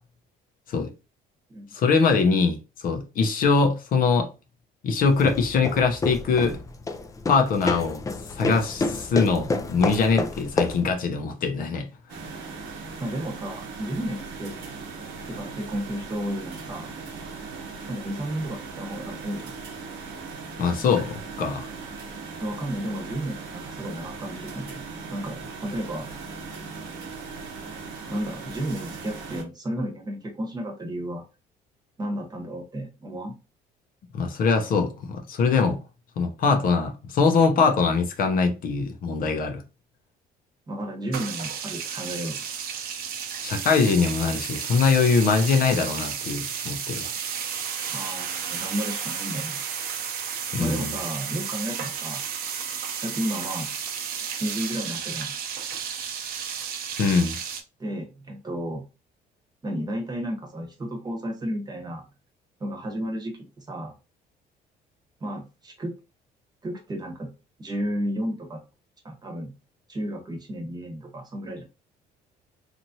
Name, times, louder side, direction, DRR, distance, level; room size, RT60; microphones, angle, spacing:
voice 1, 1.7-4.3 4.8-6.6 7.3-8.0 8.3-11.9 20.6-21.7 34.1-35.8 36.2-39.6 43.4-47.1 50.5-50.9 57.0-57.4, left 5 dB, 55° left, 0.6 m, -22 dB
sound 1, 5.0-10.9, left 3 dB, 20° left, 0.4 m, -29 dB
sound 2, 12.1-29.4, right 4 dB, 80° right, 1.0 m, -39 dB
voice 2, 13.0-14.5 15.3-16.9 17.9-19.5 22.4-24.8 25.1-26.1 28.1-31.2 32.0-33.3 40.7-42.4 47.9-49.6 50.6-52.2 53.0-53.7 54.4-55.3 57.8-58.8 59.6-62.0 62.6-63.9 65.2-65.9 66.6-67.3 67.6-68.6 69.0-69.5 69.9-71.6, right 1 dB, 25° right, 1.0 m, -32 dB
sound 3, 41.1-57.6, right 7 dB, 65° right, 0.6 m, -32 dB
3.0 x 2.5 x 2.7 m
cardioid pair, 110°, 17 cm